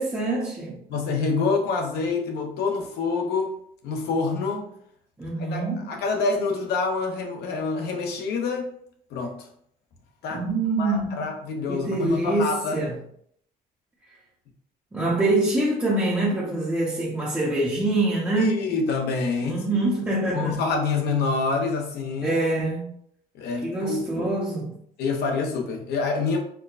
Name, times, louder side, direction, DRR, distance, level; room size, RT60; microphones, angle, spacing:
voice 1, 0.0-0.8 5.2-5.9 10.3-11.3 11.7-13.0 14.9-18.6 19.4-20.6 22.2-22.9 23.6-24.8, right 2 dB, 10° right, -7 dB, 0.8 m, -25 dB
voice 2, 0.9-3.5 3.8-4.7 5.5-8.7 9.1-9.5 10.2-10.4 10.8-12.8 18.3-19.6 20.3-22.4 23.3-24.3 25.0-26.4, left 4 dB, 70° left, 3 dB, 0.8 m, -26 dB
4.5 x 2.1 x 2.5 m, 0.67 s
cardioid pair, 110°, 17 cm